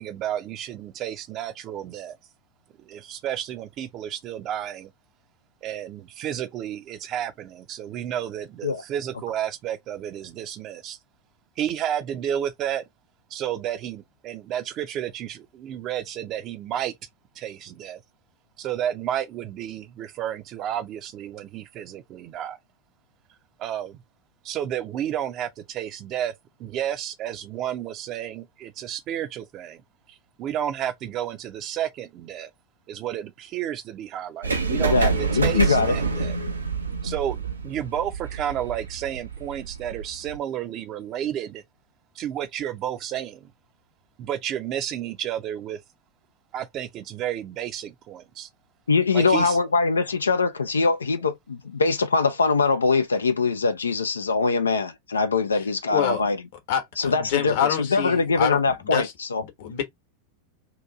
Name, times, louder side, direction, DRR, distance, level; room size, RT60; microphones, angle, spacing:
voice 1, 0.0-2.2 2.8-4.9 5.6-11.0 11.6-12.8 13.3-16.9 17.3-18.0 18.6-22.6 23.6-24.0 24.4-26.3 26.6-29.8 30.1-32.5 32.9-36.4 37.0-41.6 42.1-43.5 44.2-45.8 46.5-48.5 49.1-49.6, right 10 dB, 35° right, 0.6 m, -31 dB
sound 1, 34.4-40.4, right 4 dB, 75° right, 0.6 m, -27 dB
voice 2, 34.7-35.9 48.9-56.4 57.0-59.4, left 4 dB, 75° left, 0.4 m, -23 dB
voice 3, 55.9-56.2 56.7-59.1 59.4-59.8, left 9 dB, 50° left, 1.0 m, -26 dB
2.9 x 2.6 x 3.4 m
figure-of-eight pair, 90°, 0 cm